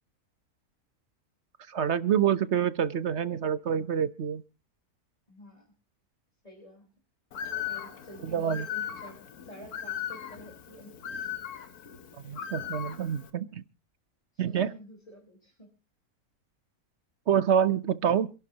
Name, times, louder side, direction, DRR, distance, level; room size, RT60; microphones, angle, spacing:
voice 1, 1.7-4.4 8.2-8.7 12.2-13.6 14.4-14.7 17.3-18.3, right 8 dB, 55° right, 14 dB, 1.1 m, -27 dB
voice 2, 5.3-5.7 6.4-6.9 7.6-11.3 12.2-12.4 12.7-13.1 14.3-15.7, equal, 25° left, -1 dB, 4.6 m, -50 dB
Bird, 7.3-13.3, left 9 dB, 80° left, 1.7 m, -38 dB
27.0 x 11.5 x 2.9 m, 0.33 s
omnidirectional pair, 1.6 m